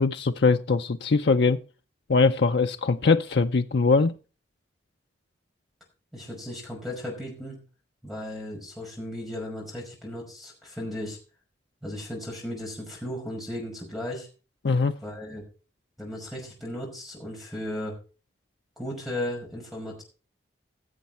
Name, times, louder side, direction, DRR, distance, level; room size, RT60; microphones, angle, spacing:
voice 1, 0.0-1.6 2.1-4.1 14.6-15.0, left 4 dB, 60° left, 0.5 m, -22 dB
voice 2, 6.1-7.6 8.0-11.2 11.8-14.3 15.0-15.4 16.0-18.0 18.8-20.0, left 1 dB, ahead, 5.5 m, -35 dB
16.5 x 7.3 x 4.4 m
head